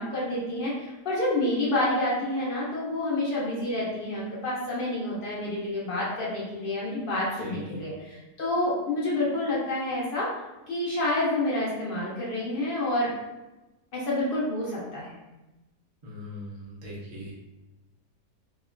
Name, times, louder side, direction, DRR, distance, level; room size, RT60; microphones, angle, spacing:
voice 1, 0.0-10.3 10.7-13.1 13.9-15.2, left 1 dB, 75° left, -6 dB, 0.5 m, -28 dB
voice 2, 7.4-7.8 16.0-17.3, left 1 dB, 40° right, -7 dB, 0.6 m, -40 dB
3.2 x 2.1 x 2.4 m, 1.0 s
omnidirectional pair, 1.8 m